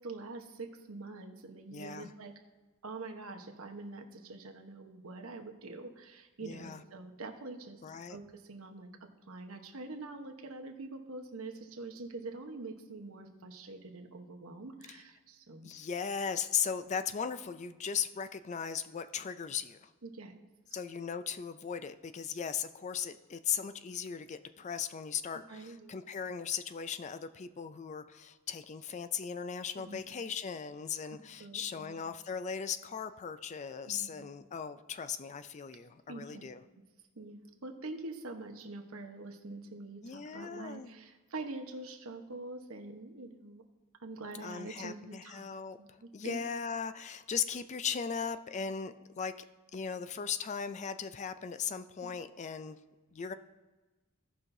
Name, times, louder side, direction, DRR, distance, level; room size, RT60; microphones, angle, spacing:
voice 1, 0.0-2.4 2.8-7.8 8.1-15.7 20.0-20.4 25.5-25.9 29.7-30.0 31.0-32.0 33.9-34.3 36.1-36.6 37.1-43.6 44.0-45.4 45.8-46.4 52.0-52.1, right 2 dB, 70° right, 5 dB, 1.0 m, -45 dB
voice 2, 1.7-2.1 6.4-6.8 7.8-8.2 15.6-19.9 20.7-36.6 40.0-40.9 44.4-49.3 49.7-52.8 53.1-53.3, left 7 dB, 30° left, 11 dB, 0.4 m, -38 dB
17.0 x 5.7 x 2.7 m, 1.3 s
head